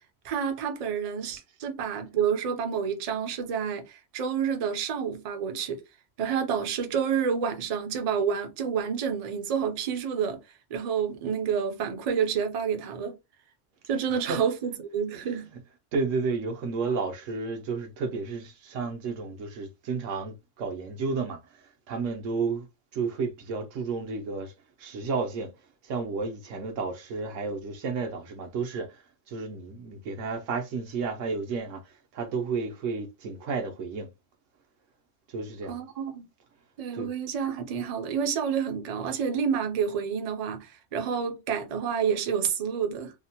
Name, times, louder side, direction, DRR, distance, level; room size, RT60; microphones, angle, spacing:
voice 1, 0.2-5.8 6.2-10.4 10.7-13.2 13.9-15.5 35.7-36.3 36.8-43.1, right 7 dB, 50° right, 0.4 m, -29 dB
voice 2, 15.1-15.5 15.9-22.7 22.9-24.5 24.8-25.5 25.8-29.0 29.3-34.1 35.3-35.8 36.9-37.1, right 4 dB, 80° right, 1.0 m, -32 dB
2.8 x 2.1 x 2.7 m
omnidirectional pair, 1.3 m